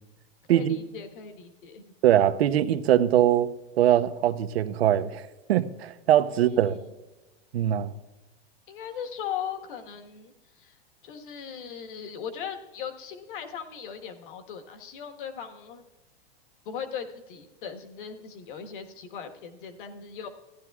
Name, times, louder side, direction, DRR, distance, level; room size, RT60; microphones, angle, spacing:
voice 1, 0.5-1.8 6.3-6.9 8.7-10.8 11.0-15.8 16.6-20.3, left 7 dB, 55° left, 1.4 m, -38 dB
voice 2, 2.0-3.5 3.8-5.2 5.5-6.8 7.5-7.9, right 11 dB, 80° right, 0.8 m, -22 dB
15.5 x 11.0 x 2.3 m
supercardioid pair, 165°, 31 cm